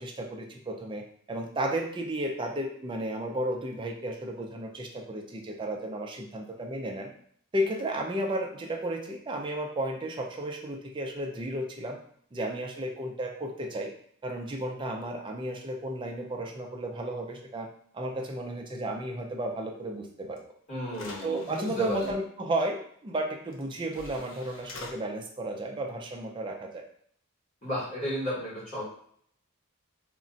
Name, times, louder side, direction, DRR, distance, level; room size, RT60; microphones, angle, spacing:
voice 1, 0.0-7.1 7.5-12.0 12.3-13.9 14.2-17.7 17.9-20.4 21.2-26.8, right 1 dB, 20° right, 2 dB, 0.3 m, -33 dB
sound 1, 20.4-20.5 20.9-22.1 23.5-23.6 23.9-24.9, left 3 dB, 60° left, 0.6 m, -45 dB
voice 2, 20.7-22.0 27.6-28.8, equal, 30° left, -9 dB, 1.3 m, -33 dB
2.4 x 2.1 x 3.8 m, 0.62 s
head